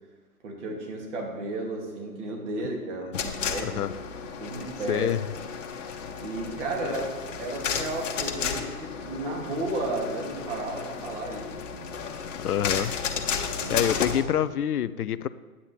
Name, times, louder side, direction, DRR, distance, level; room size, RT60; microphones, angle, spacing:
voice 1, 0.4-4.0 4.4-5.1 6.2-7.0 7.4-11.9 13.6-13.9, right 2 dB, 50° right, -1 dB, 2.8 m, -33 dB
sound 1, 3.1-14.2, left 6 dB, 55° left, 1.3 m, -33 dB
voice 2, 3.6-3.9 4.9-5.2 6.9-7.0 12.4-13.0 13.7-15.3, left 10 dB, 75° left, 15 dB, 0.6 m, -26 dB
9.8 x 8.6 x 4.3 m, 1.4 s
figure-of-eight pair, 130°, 45 cm